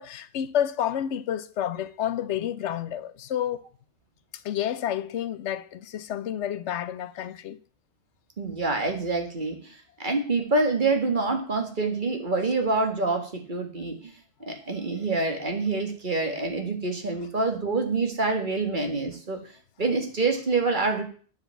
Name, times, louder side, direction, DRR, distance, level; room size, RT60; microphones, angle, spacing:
voice 1, 0.0-3.6 4.4-7.6, left 10 dB, 85° left, 1.0 m, -30 dB
voice 2, 8.4-9.7 10.0-14.0 14.5-19.4 19.8-21.0, right 3 dB, 45° right, 2.0 m, -26 dB
9.4 x 5.4 x 8.1 m
omnidirectional pair, 1.1 m